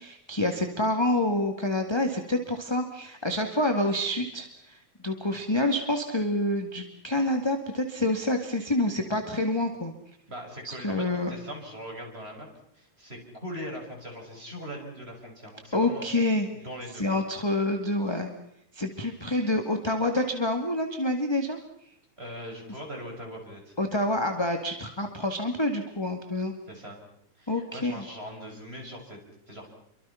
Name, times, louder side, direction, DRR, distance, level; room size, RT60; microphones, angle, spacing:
voice 1, 0.0-9.9 10.6-11.3 15.7-16.5 16.9-18.3 18.7-21.6 23.8-26.5 27.5-28.0, left 1 dB, 10° left, 4 dB, 1.5 m, -27 dB
voice 2, 10.3-12.5 12.7-16.0 16.5-17.0 22.2-23.7 26.7-27.0 27.4-29.2 29.5-29.7, equal, 20° right, 1 dB, 6.6 m, -40 dB
29.5 x 24.5 x 5.8 m, 0.71 s
omnidirectional pair, 3.4 m